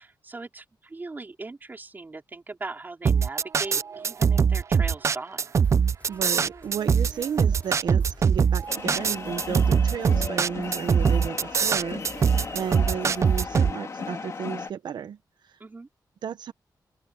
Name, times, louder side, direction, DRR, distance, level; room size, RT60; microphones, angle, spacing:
voice 1, 0.0-5.5 15.6-15.9, right 3 dB, 25° right, 4.0 m, -39 dB
sound 1, 3.1-13.7, right 6 dB, 40° right, 0.4 m, -22 dB
sound 2, 5.6-13.6, left 2 dB, 20° left, 3.0 m, -50 dB
voice 2, 6.1-15.2 15.4-15.5 16.2-16.5, right 8 dB, 80° right, 0.9 m, -33 dB
sound 3, 8.7-14.7, left 5 dB, 45° left, 1.6 m, -36 dB
open air
wide cardioid pair, 140°, 7 cm